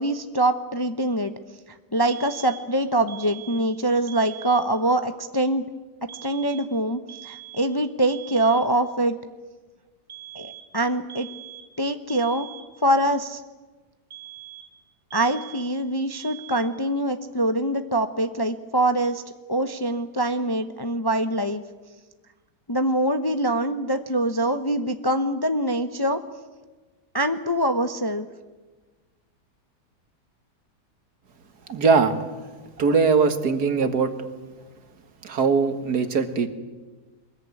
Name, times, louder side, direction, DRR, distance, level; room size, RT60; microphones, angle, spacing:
voice 1, 0.0-1.3 1.9-5.6 6.0-9.2 10.3-11.3 11.8-12.5 12.8-13.4 15.1-19.2 19.5-21.6 22.7-26.2 27.1-28.3, right 1 dB, 20° left, 8 dB, 0.7 m, -24 dB
sound 1, 2.1-2.7 3.1-3.7 4.1-4.7 6.1-6.8 7.1-7.8 8.1-8.8 10.1-10.8 11.1-11.8 12.1-12.8 14.1-14.8 15.1-15.8 16.1-16.8, right 12 dB, 45° right, 1.7 m, -43 dB
voice 2, 31.7-32.1 32.8-34.3 35.2-36.5, right 5 dB, 70° right, 8 dB, 2.2 m, -21 dB
23.0 x 21.0 x 9.6 m, 1.3 s
omnidirectional pair, 1.8 m